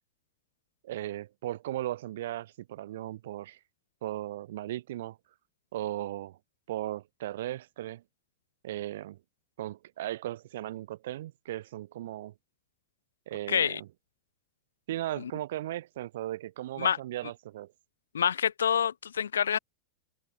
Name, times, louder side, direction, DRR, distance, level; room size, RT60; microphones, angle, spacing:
voice 1, 0.8-3.6 4.0-5.2 5.7-6.4 6.7-8.0 8.6-9.2 9.6-12.3 13.3-13.9 14.9-17.7, right 14 dB, 55° right, 0.4 m, -37 dB
voice 2, 13.5-13.8 15.2-15.3 16.8-17.0 18.1-19.6, left 8 dB, 65° left, 0.5 m, -27 dB
figure-of-eight pair, 90°, 0 cm